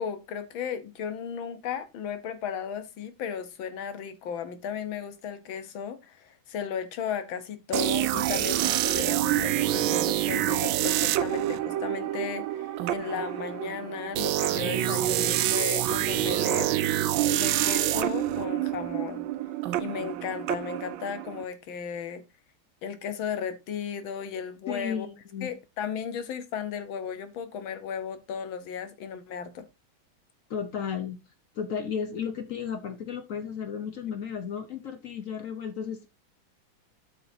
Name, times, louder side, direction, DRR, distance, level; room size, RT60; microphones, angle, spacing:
voice 1, 0.0-16.7 17.3-19.3 19.8-22.3 22.8-25.1 25.4-29.7, left 7 dB, 80° left, 1.8 m, -35 dB
sound 1, 7.7-21.4, right 13 dB, 80° right, 1.3 m, -27 dB
voice 2, 24.7-25.5 30.5-31.2 31.5-36.1, left 7 dB, 55° left, 0.9 m, -34 dB
12.5 x 5.8 x 2.7 m
omnidirectional pair, 2.2 m